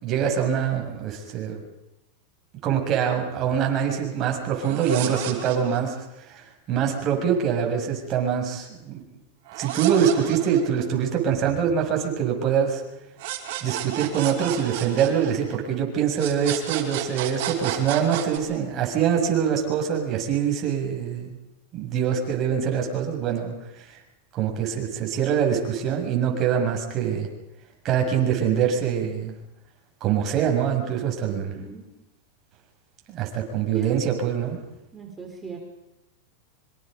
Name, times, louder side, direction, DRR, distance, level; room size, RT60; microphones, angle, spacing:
voice 1, 0.0-1.6 2.6-6.0 6.2-9.0 9.6-12.8 13.6-21.4 21.7-24.0 24.3-27.3 27.8-29.3 30.0-31.5 33.1-34.6, right 8 dB, 35° right, 2 dB, 6.9 m, -24 dB
sound 1, 4.5-6.0 9.5-11.1 13.2-15.8 16.2-18.4, right 12 dB, 60° right, 4.9 m, -32 dB
voice 2, 31.2-31.9 33.7-33.9 34.9-35.6, right 5 dB, 15° right, 1 dB, 4.5 m, -40 dB
26.0 x 25.0 x 5.3 m, 0.89 s
supercardioid pair, 125°, 0 cm